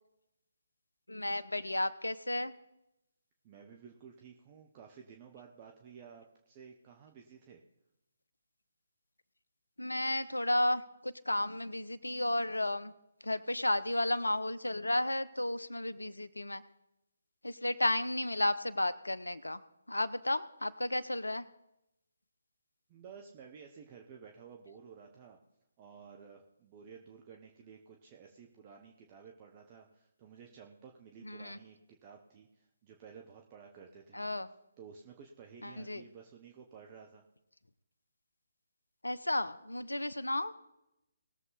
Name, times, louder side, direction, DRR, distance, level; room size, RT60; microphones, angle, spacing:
voice 1, 1.1-2.5 9.8-12.9 13.2-16.6 17.4-19.6 19.9-21.4 31.2-31.6 34.1-34.5 35.6-36.0 39.0-40.6, left 1 dB, 80° left, 14 dB, 0.8 m, -33 dB
voice 2, 3.4-7.6 22.9-25.4 25.8-34.4 34.8-37.2, right 6 dB, 25° right, 2 dB, 1.1 m, -53 dB
19.5 x 7.3 x 4.1 m, 0.86 s
figure-of-eight pair, 140°, 0 cm